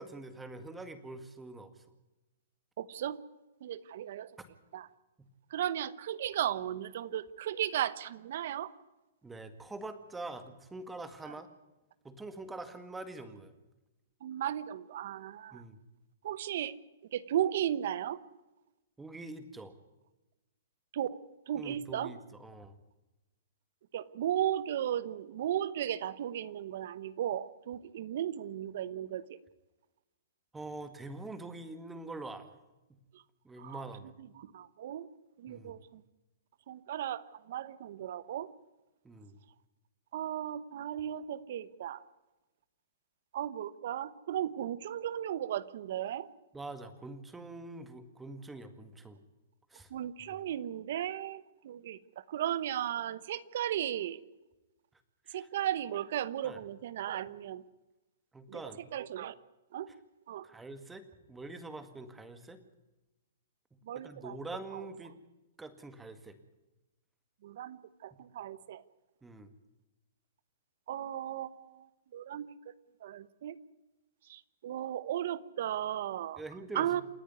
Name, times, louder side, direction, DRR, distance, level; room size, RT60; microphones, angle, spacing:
voice 1, 0.0-1.8 4.4-4.5 5.2-5.3 9.2-11.5 12.0-13.5 15.5-15.8 19.0-19.7 21.5-22.7 30.5-32.5 32.9-33.0 33.4-34.1 35.5-35.8 39.0-39.4 46.5-49.2 49.7-49.9 50.3-50.4 55.3-55.5 56.4-56.6 58.3-58.9 59.9-60.0 60.4-62.6 64.0-65.1 65.6-66.4 68.1-68.2 69.2-69.5 76.4-77.0, right 2 dB, 5° right, 10 dB, 1.9 m, -45 dB
voice 2, 2.8-3.2 3.6-4.3 4.7-4.9 5.5-8.7 11.3-11.4 14.2-15.6 16.2-16.7 17.1-18.2 20.9-21.2 21.5-22.1 23.9-29.4 33.6-33.8 34.4-35.1 35.4-36.0 36.7-38.5 40.1-42.0 43.3-46.3 49.9-54.2 55.3-57.6 58.5-58.6 58.9-59.3 59.7-59.9 60.3-60.5 63.8-64.4 64.7-64.8 67.4-68.8 70.9-71.9 72.1-72.7 73.0-73.6 74.3-76.4 76.7-77.0, right 11 dB, 55° right, 17 dB, 1.1 m, -35 dB
28.0 x 10.0 x 9.5 m, 1.0 s
hypercardioid pair, 150°, 0 cm